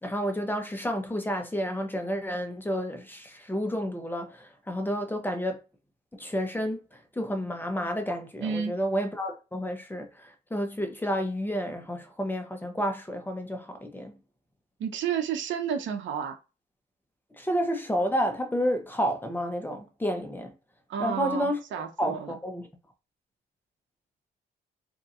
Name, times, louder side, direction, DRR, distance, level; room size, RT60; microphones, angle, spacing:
voice 1, 0.0-5.6 6.1-14.2 17.3-20.5 21.0-21.6 22.0-22.7, equal, 10° left, 0.8 m, -30 dB
voice 2, 8.4-8.7 14.8-16.3 20.9-22.3, right 7 dB, 70° right, 0.8 m, -31 dB
3.9 x 2.8 x 2.4 m
cardioid pair, 90°, 20 cm